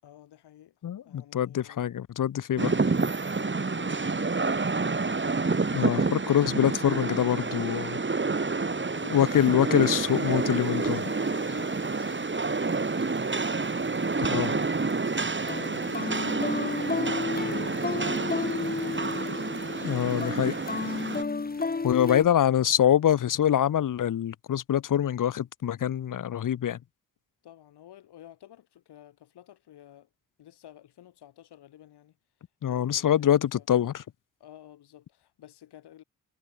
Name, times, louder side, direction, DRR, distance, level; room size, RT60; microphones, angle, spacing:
voice 1, 0.0-1.9 2.7-4.5 10.8-20.1 20.7-20.9 21.3-22.6 27.4-30.1 30.4-32.2 32.6-33.7 34.4-36.0, left 12 dB, 85° left, 7.8 m, -52 dB
voice 2, 0.8-2.7 5.7-8.0 9.1-11.0 14.3-14.5 19.8-20.6 21.8-26.8 32.6-34.0, left 10 dB, 55° left, 0.9 m, -25 dB
Rain, 2.6-21.2, right 4 dB, 30° right, 2.7 m, -29 dB
sound 1, 9.3-9.4 10.1-10.2 10.9-12.1 12.4-12.7 13.0-14.6 14.9-22.2, left 4 dB, 25° left, 1.2 m, -33 dB
supercardioid pair, 50°, 39 cm